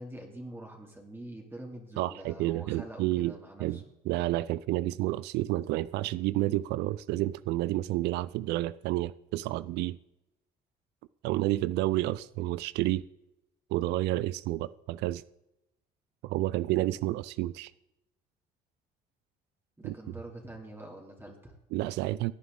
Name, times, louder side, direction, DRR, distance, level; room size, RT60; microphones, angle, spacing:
voice 1, 0.0-3.8 19.8-21.5, right 1 dB, 15° right, 2.7 m, -45 dB
voice 2, 2.0-3.3 3.6-10.0 11.2-13.0 13.7-15.2 16.2-17.7 19.8-19.9 21.7-22.3, right 16 dB, 85° right, 0.4 m, -30 dB
17.0 x 9.6 x 3.8 m
cardioid pair, 110°, 17 cm